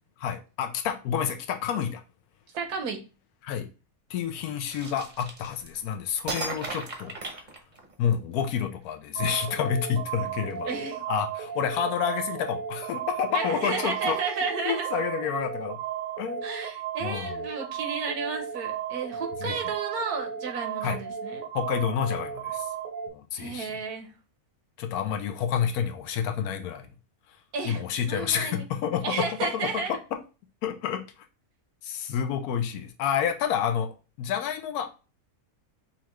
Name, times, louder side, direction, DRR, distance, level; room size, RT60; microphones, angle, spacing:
voice 1, 0.2-2.0 3.4-3.7 4.1-7.1 8.0-10.7 11.1-14.2 14.6-15.8 16.2-16.5 17.0-17.4 19.4-19.6 20.8-21.0 21.5-22.7 23.1-23.8 24.8-26.9 27.6-30.0 30.6-31.0 31.8-33.9 34.2-34.9, left 8 dB, 85° left, 1.1 m, -29 dB
voice 2, 2.5-3.1 10.7-11.0 13.3-14.9 16.4-21.4 23.3-24.1 27.5-27.8 28.1-28.6 29.0-30.0, right 5 dB, 85° right, 1.4 m, -32 dB
sound 1, 4.7-5.8 6.3-8.1, right 3 dB, 40° right, 0.7 m, -36 dB
sound 2, 9.1-23.1, right 8 dB, 70° right, 1.1 m, -35 dB
5.6 x 2.5 x 3.0 m
omnidirectional pair, 1.6 m